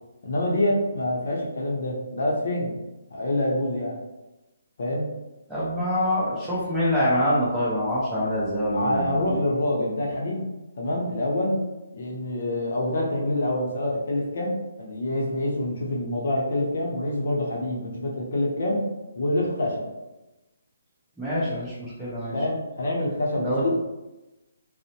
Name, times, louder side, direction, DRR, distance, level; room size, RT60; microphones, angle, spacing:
voice 1, 0.2-2.7 3.1-4.0 4.8-5.1 8.7-10.5 10.8-11.6 11.9-18.8 19.2-19.9 22.3-23.7, left 1 dB, 60° left, -2 dB, 0.7 m, -26 dB
voice 2, 5.5-9.3 21.2-22.3 23.4-23.7, equal, 5° right, -10 dB, 0.7 m, -25 dB
2.6 x 2.1 x 2.8 m, 1.0 s
hypercardioid pair, 160°, 0 cm